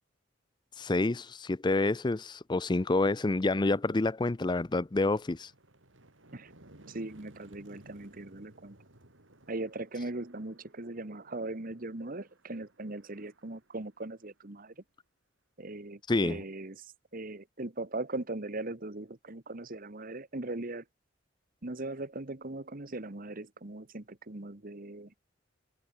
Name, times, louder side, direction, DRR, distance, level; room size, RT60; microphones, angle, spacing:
voice 1, 0.8-5.5 16.1-16.4, left 2 dB, 25° left, 0.5 m, -28 dB
sound 1, 4.1-14.6, right 1 dB, 90° right, 4.1 m, -59 dB
voice 2, 6.9-8.8 9.5-14.7 15.6-16.9 17.1-20.8 21.6-25.1, right 2 dB, 45° right, 1.5 m, -39 dB
head